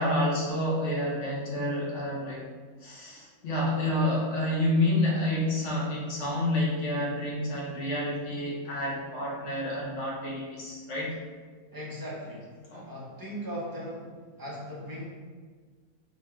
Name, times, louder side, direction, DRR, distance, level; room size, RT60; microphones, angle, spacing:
voice 1, 0.0-2.4 2.8-11.2 12.7-12.9, left 1 dB, 55° left, -4 dB, 1.2 m, -29 dB
voice 2, 11.7-12.5 12.8-15.1, equal, 20° right, -6 dB, 0.7 m, -38 dB
4.3 x 2.3 x 4.7 m, 1.5 s
omnidirectional pair, 1.7 m